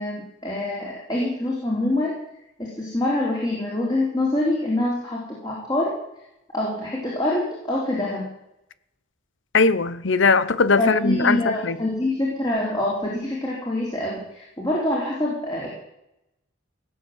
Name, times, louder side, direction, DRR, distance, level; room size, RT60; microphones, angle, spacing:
voice 1, 0.0-2.2 2.6-6.0 6.5-8.3 10.8-15.7, left 1 dB, 20° left, 3.8 m, -25 dB
voice 2, 9.5-11.7, left 4 dB, 75° left, 0.8 m, -20 dB
17.0 x 8.1 x 8.1 m
head